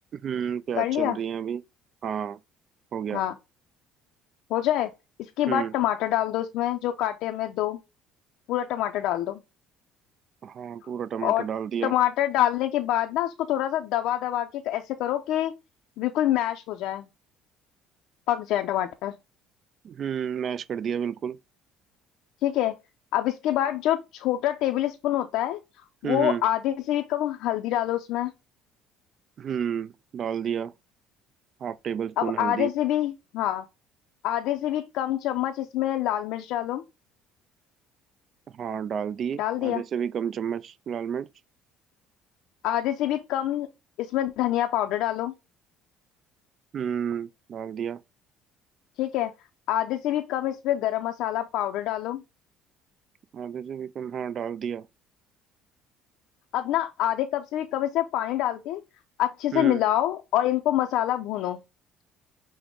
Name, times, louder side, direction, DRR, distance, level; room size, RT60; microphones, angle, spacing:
voice 1, 0.1-1.6 2.0-2.4 2.9-3.2 5.5-5.7 10.4-11.9 19.8-21.4 26.0-26.4 29.4-30.7 31.6-32.7 38.5-41.3 46.7-48.0 53.3-54.8 59.5-59.8, right 8 dB, 50° right, 0.3 m, -31 dB
voice 2, 0.8-1.2 3.1-3.4 4.5-4.9 5.4-7.8 8.5-9.4 11.2-11.5 11.8-15.5 16.0-17.0 18.3-19.1 22.4-22.8 23.1-25.6 26.0-28.3 32.2-33.6 34.2-36.8 39.4-39.8 42.6-43.7 44.0-45.3 49.0-49.3 49.7-52.2 56.5-58.8 59.2-61.6, left 12 dB, 75° left, 0.5 m, -26 dB
6.0 x 2.1 x 3.6 m
supercardioid pair, 90°, 0 cm